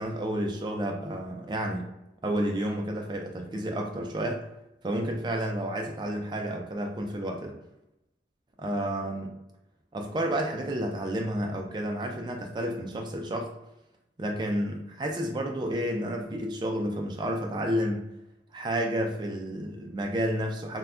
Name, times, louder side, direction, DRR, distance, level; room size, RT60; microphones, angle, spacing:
voice 1, 0.0-1.9 2.2-4.4 4.8-7.6 8.6-9.3 9.9-13.5 14.2-18.0 18.5-20.8, right 1 dB, 25° right, 2 dB, 0.3 m, -30 dB
2.2 x 2.1 x 3.6 m, 0.89 s
head